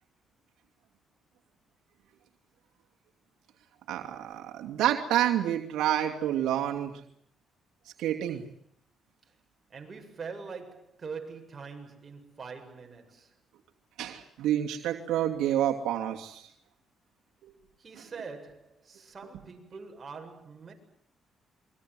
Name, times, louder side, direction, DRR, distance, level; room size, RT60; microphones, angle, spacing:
voice 1, 3.9-6.9 8.0-8.5 14.0-16.5 17.4-17.5, right 11 dB, 85° right, 2.7 m, -28 dB
voice 2, 9.7-13.3 17.8-20.7, right 5 dB, 35° right, 7.8 m, -43 dB
28.0 x 23.5 x 7.9 m
cardioid pair, 90°, 0 cm